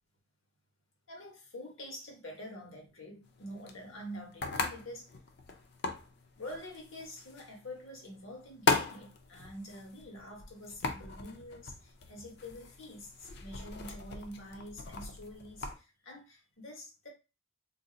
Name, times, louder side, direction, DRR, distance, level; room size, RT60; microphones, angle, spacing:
voice 1, 1.1-5.1 6.4-17.1, left 1 dB, 75° left, 0 dB, 1.2 m, -46 dB
sound 1, 3.3-15.8, left 3 dB, 55° left, 0.5 m, -38 dB
2.6 x 2.4 x 3.8 m, 0.29 s
head